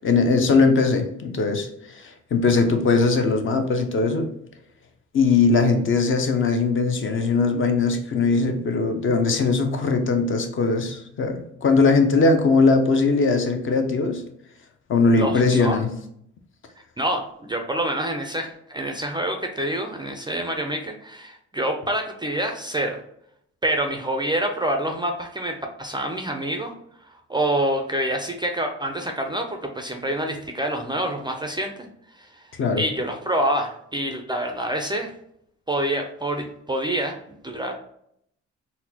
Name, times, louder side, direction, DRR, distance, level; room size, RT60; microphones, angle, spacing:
voice 1, 0.0-4.3 5.1-14.2 14.9-15.9 32.6-32.8, left 4 dB, 45° left, 6 dB, 0.5 m, -20 dB
voice 2, 15.2-15.8 17.0-23.0 23.6-26.7 27.1-31.9 32.1-32.4 32.8-35.1 35.7-37.2 37.4-37.7, right 1 dB, 15° right, 4 dB, 0.3 m, -27 dB
4.1 x 2.1 x 2.7 m, 0.71 s
cardioid pair, 90°, 30 cm